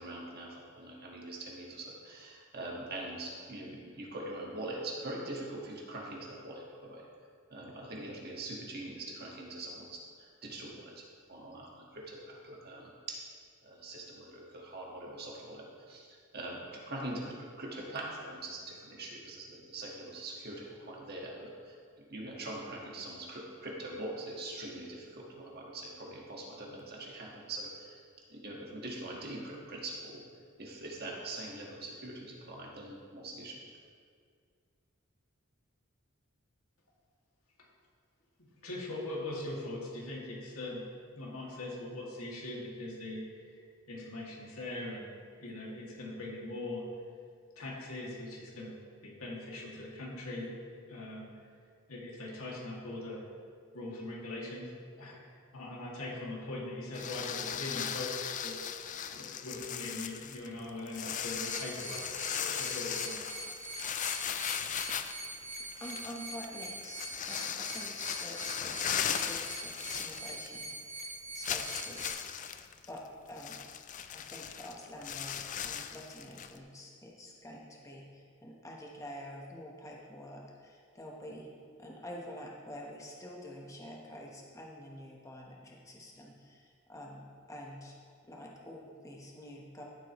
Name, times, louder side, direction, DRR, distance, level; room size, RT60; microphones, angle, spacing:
voice 1, 0.0-7.1 7.5-11.0 11.3-13.2 13.6-28.0 28.3-30.2 30.6-33.6, right 2 dB, 45° right, -2 dB, 1.7 m, -43 dB
voice 2, 38.4-40.8 41.1-43.6 43.9-45.1 45.4-46.8 47.6-48.7 49.0-51.3 51.9-53.2 53.7-58.6 59.1-63.3, left 2 dB, 85° left, -4 dB, 2.4 m, -41 dB
sound 1, 56.9-70.7 71.0-71.1 71.4-76.6, left 9 dB, 35° left, 0.4 m, -38 dB
sound 2, 61.3-72.1, right 2 dB, 30° right, 1.9 m, -43 dB
voice 3, 65.3-68.4 68.6-71.0 71.3-72.5 72.9-73.0 73.3-73.6 74.1-81.5 81.8-87.2 87.5-87.9 88.2-89.8, equal, 15° left, -2 dB, 1.1 m, -47 dB
13.5 x 7.8 x 3.1 m, 2.1 s
head